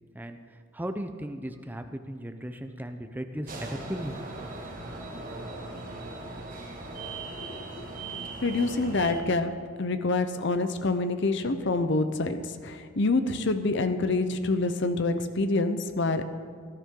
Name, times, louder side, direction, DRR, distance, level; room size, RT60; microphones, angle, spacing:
voice 1, 0.1-4.3, equal, 10° right, 7 dB, 0.6 m, -37 dB
sound 1, 3.5-9.2, right 2 dB, 45° right, 1.9 m, -39 dB
voice 2, 8.1-16.2, left 3 dB, 60° left, 9 dB, 0.8 m, -27 dB
18.0 x 11.5 x 3.8 m, 2.2 s
head